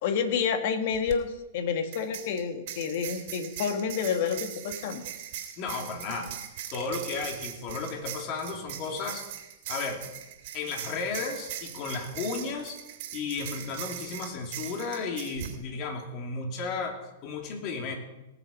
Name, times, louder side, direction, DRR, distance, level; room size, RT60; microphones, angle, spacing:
voice 1, 0.0-5.0, left 6 dB, 60° left, 8 dB, 1.7 m, -29 dB
sound 1, 0.9-1.2 1.9-15.6, right 10 dB, 60° right, 2.4 m, -40 dB
voice 2, 5.6-6.3 6.7-9.2 9.7-10.1 10.5-12.8 13.1-17.9, left 4 dB, 45° left, 2 dB, 2.9 m, -34 dB
19.0 x 7.3 x 5.4 m, 1.0 s
hypercardioid pair, 115°, 0 cm